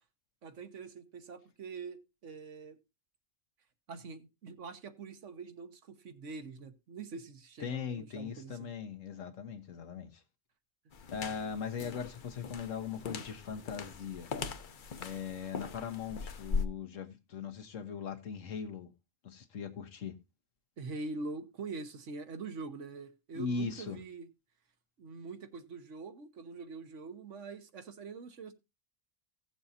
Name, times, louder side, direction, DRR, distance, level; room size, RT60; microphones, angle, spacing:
voice 1, 0.4-2.8 3.9-8.7 20.8-24.3 25.0-28.5, right 4 dB, 70° right, 1.4 m, -44 dB
voice 2, 7.6-10.2 11.1-14.3 15.0-18.9 19.2-20.2 23.3-24.0, left 6 dB, 80° left, 1.5 m, -39 dB
sound 1, 10.9-16.6, left 5 dB, 45° left, 0.8 m, -40 dB
16.5 x 7.0 x 2.7 m
omnidirectional pair, 1.3 m